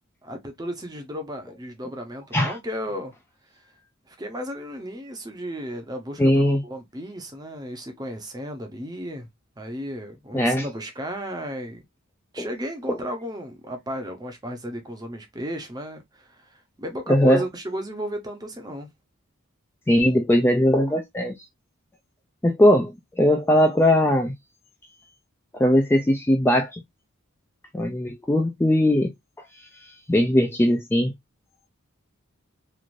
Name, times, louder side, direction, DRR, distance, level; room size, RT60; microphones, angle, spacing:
voice 1, 0.2-3.1 4.1-9.3 9.6-11.8 12.3-18.9, equal, 20° right, 0.7 m, -34 dB
voice 2, 6.2-6.6 10.3-10.7 12.4-12.5 12.9-13.0 17.1-17.4 19.9-21.3 22.4-22.9 23.2-24.3 25.5-26.8 27.7-29.1 29.5-31.1, left 1 dB, 10° left, 0.3 m, -20 dB
3.1 x 2.5 x 2.5 m
head